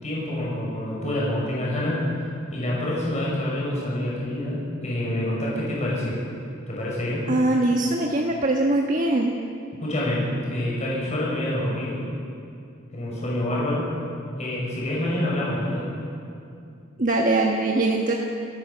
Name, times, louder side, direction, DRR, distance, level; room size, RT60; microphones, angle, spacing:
voice 1, 0.0-2.0 2.5-6.2 6.7-7.3 9.8-12.0 12.9-13.9 14.4-15.9, left 1 dB, 35° left, -5 dB, 6.4 m, -27 dB
voice 2, 7.3-9.3 17.0-18.1, right 2 dB, 40° right, 0 dB, 1.4 m, -22 dB
28.5 x 14.5 x 6.9 m, 2.5 s
head